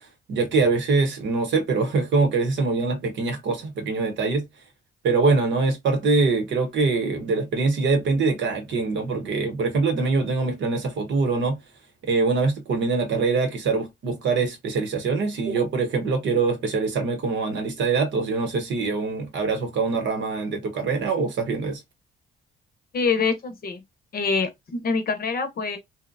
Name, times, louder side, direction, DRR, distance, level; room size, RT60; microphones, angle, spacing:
voice 1, 0.3-4.4 5.0-11.6 12.0-21.8, right 4 dB, 70° right, 0.9 m, -23 dB
voice 2, 22.9-23.8 24.1-25.8, left 4 dB, 50° left, 0.7 m, -25 dB
2.7 x 2.1 x 2.5 m
cardioid pair, 90°, 20 cm